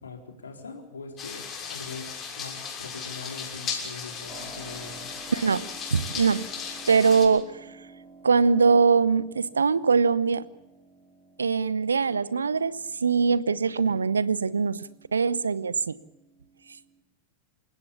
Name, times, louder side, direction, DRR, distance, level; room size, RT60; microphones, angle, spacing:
voice 1, 0.0-5.1, left 4 dB, 70° left, 3 dB, 4.0 m, -42 dB
sound 1, 1.2-7.3, left 6 dB, 25° left, 6.5 m, -36 dB
Keyboard (musical), 4.3-17.0, right 4 dB, 15° right, 5.5 m, -51 dB
voice 2, 5.3-6.5 6.9-7.5 8.2-10.4 11.4-16.0, right 5 dB, 75° right, 19 dB, 0.8 m, -22 dB
28.0 x 16.5 x 7.1 m, 0.97 s
figure-of-eight pair, 90°, 0 cm